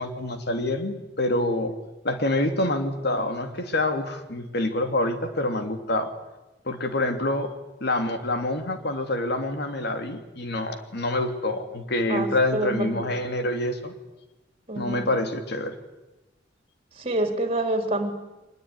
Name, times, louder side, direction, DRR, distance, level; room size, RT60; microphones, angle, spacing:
voice 1, 0.0-1.7 2.0-6.1 6.6-7.5 7.8-13.9 14.7-15.7, left 1 dB, 60° left, 7 dB, 2.9 m, -26 dB
voice 2, 12.1-13.0 14.7-15.1 17.0-18.1, right 1 dB, 35° right, 6 dB, 3.9 m, -27 dB
24.0 x 20.5 x 9.8 m, 1.0 s
head